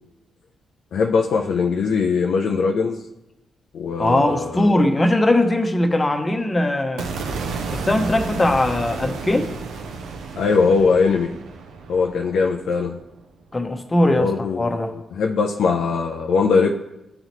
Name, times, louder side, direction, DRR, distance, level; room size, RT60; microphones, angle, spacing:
voice 1, 0.9-3.0 3.7-4.8 10.3-11.4 11.9-13.0 14.2-14.7 15.1-16.7, left 5 dB, 70° left, 3 dB, 0.4 m, -20 dB
voice 2, 4.0-7.1 7.7-9.5 13.5-14.9, left 1 dB, 30° left, 5 dB, 0.9 m, -20 dB
sound 1, 7.0-13.2, right 4 dB, 80° right, 0.6 m, -32 dB
11.5 x 3.9 x 3.0 m, 0.93 s
hypercardioid pair, 45°, 0 cm